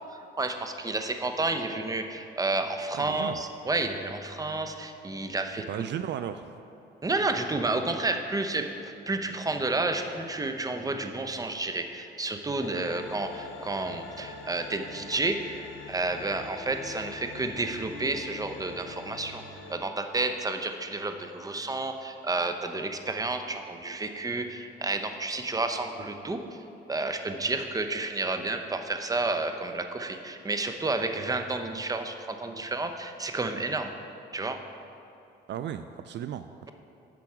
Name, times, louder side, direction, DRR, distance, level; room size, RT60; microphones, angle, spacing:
voice 1, 0.4-5.6 7.0-19.4 19.7-26.4 26.9-33.9 34.3-34.6, right 2 dB, 20° right, 6 dB, 0.8 m, -31 dB
voice 2, 2.9-3.4 5.7-6.5 35.5-36.7, right 10 dB, 65° right, 10 dB, 0.4 m, -35 dB
sound 1, 12.6-19.7, left 4 dB, 80° left, 1.0 m, -44 dB
10.5 x 6.9 x 4.9 m, 2.7 s
cardioid pair, 90°, 20 cm